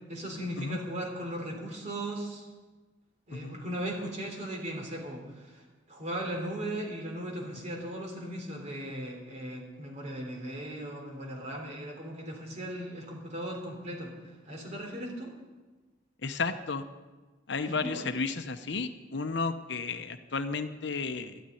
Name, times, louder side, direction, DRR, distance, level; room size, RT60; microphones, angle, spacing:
voice 1, 0.1-2.5 3.3-5.6 5.9-14.1 14.4-15.3 17.6-18.0, right 1 dB, 35° right, 1 dB, 3.4 m, -37 dB
voice 2, 16.2-16.8 17.5-21.4, left 4 dB, 65° left, 9 dB, 0.8 m, -33 dB
12.5 x 9.4 x 9.9 m, 1.3 s
head